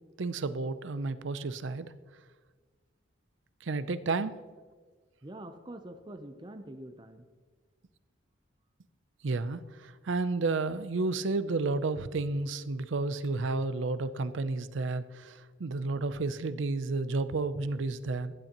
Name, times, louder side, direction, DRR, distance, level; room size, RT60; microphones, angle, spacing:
voice 1, 0.2-1.9 3.6-4.4 9.2-18.3, right 3 dB, 70° right, 14 dB, 0.5 m, -31 dB
voice 2, 5.2-7.3, right 1 dB, 25° right, 8 dB, 0.6 m, -45 dB
15.5 x 10.5 x 2.9 m, 1.5 s
head